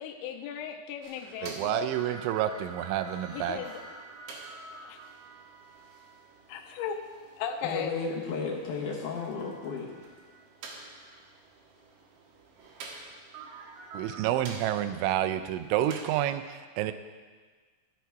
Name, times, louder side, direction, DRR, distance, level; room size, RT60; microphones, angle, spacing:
voice 1, 0.0-1.9 3.3-3.8 4.8-5.0 6.5-7.0 7.4-8.0, left 8 dB, 85° left, 5 dB, 3.0 m, -36 dB
sound 1, 1.0-16.1, right 3 dB, 65° right, 2.9 m, -48 dB
voice 2, 1.4-3.6 13.9-16.9, right 11 dB, 90° right, 10 dB, 3.0 m, -29 dB
voice 3, 7.6-9.9, left 4 dB, 65° left, -3 dB, 2.1 m, -33 dB
14.0 x 7.1 x 4.6 m, 1.5 s
omnidirectional pair, 5.3 m